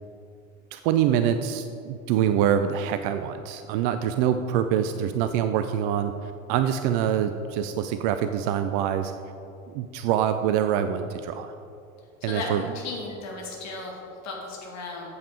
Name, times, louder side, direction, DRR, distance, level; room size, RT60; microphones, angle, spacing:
voice 1, 0.7-6.1 6.5-9.1 9.7-11.5 12.2-12.6, right 9 dB, 40° right, 9 dB, 0.4 m, -25 dB
voice 2, 4.8-5.1 12.2-15.1, left 3 dB, 40° left, -1 dB, 2.2 m, -36 dB
8.6 x 8.0 x 4.8 m, 2.6 s
figure-of-eight pair, 75°, 42 cm